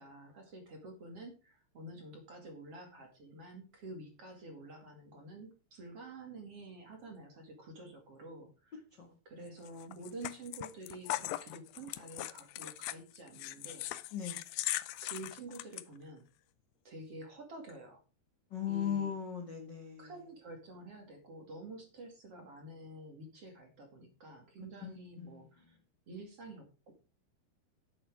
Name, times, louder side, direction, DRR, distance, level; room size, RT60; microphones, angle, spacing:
voice 1, 0.0-8.8 9.2-13.9 15.0-16.3 16.8-18.0 18.7-19.1 20.0-25.8 26.1-26.9, right 2 dB, 40° right, 3 dB, 2.7 m, -49 dB
voice 2, 9.0-9.5 14.1-14.4 18.5-20.1 24.8-25.4, left 9 dB, 50° left, 4 dB, 1.4 m, -38 dB
sound 1, 9.7-15.8, left 16 dB, 80° left, 2.2 m, -39 dB
11.0 x 8.7 x 4.8 m, 0.33 s
omnidirectional pair, 4.7 m